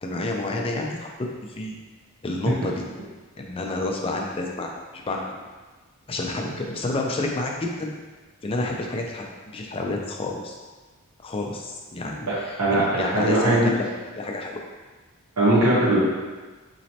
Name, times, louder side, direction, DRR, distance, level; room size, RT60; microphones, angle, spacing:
voice 1, 0.0-1.1 1.6-1.7 2.2-2.8 3.4-4.7 5.0-5.4 6.1-7.9 8.4-10.6 11.2-14.6, left 2 dB, 25° left, 0 dB, 0.4 m, -29 dB
voice 2, 12.3-13.7 15.4-16.0, right 1 dB, 85° right, -10 dB, 0.9 m, -20 dB
4.1 x 3.1 x 2.8 m, 1.3 s
head